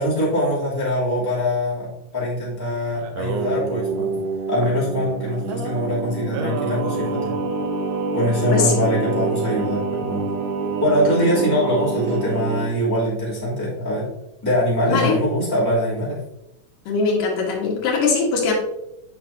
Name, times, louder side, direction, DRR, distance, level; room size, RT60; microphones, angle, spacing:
voice 1, 0.0-4.2 4.5-7.3 8.1-10.2 10.8-14.1 14.4-16.2, equal, 5° left, -8 dB, 2.6 m, -23 dB
Singing, 3.0-12.7, right 4 dB, 80° right, 2.1 m, -26 dB
voice 2, 16.9-18.5, left 4 dB, 90° left, -1 dB, 3.2 m, -21 dB
9.3 x 6.1 x 2.8 m, 0.87 s
omnidirectional pair, 3.6 m